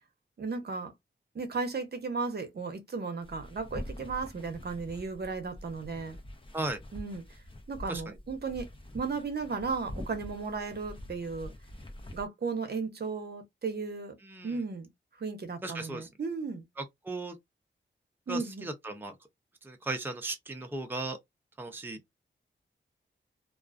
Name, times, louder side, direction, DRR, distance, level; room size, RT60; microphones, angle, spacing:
voice 1, 0.4-0.9 1.3-6.2 6.9-7.2 7.7-8.7 8.9-11.5 12.1-14.1 14.4-14.9 15.2-16.6 18.3-18.7, right 4 dB, 55° right, 0.8 m, -35 dB
sound 1, 3.2-12.2, left 1 dB, 25° left, 0.7 m, -45 dB
voice 2, 14.2-14.6 15.6-16.1 16.8-17.4 18.3-19.1 19.6-21.2 21.6-22.0, right 2 dB, 10° right, 0.6 m, -36 dB
2.3 x 2.3 x 2.4 m
cardioid pair, 70°, 20 cm